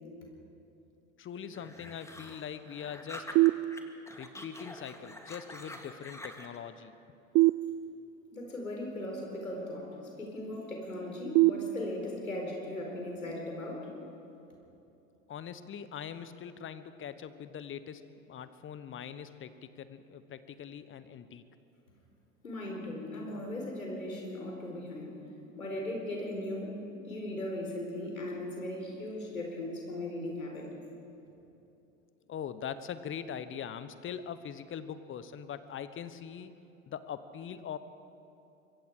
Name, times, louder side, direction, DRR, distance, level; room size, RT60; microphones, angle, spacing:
voice 1, 1.2-3.3 4.2-6.9 15.3-21.5 32.3-36.5 36.9-37.8, left 8 dB, 30° left, 13 dB, 1.2 m, -42 dB
sound 1, 1.5-3.8 4.1-6.6, left 1 dB, 5° left, 2.2 m, -46 dB
sound 2, 3.4-4.3 7.3-8.4 11.4-12.4, right 19 dB, 30° right, 0.4 m, -27 dB
voice 2, 8.3-13.9 22.4-25.3 25.6-30.7, left 1 dB, 85° left, 0 dB, 4.6 m, -38 dB
26.0 x 23.0 x 5.0 m, 2.9 s
figure-of-eight pair, 75°, 41 cm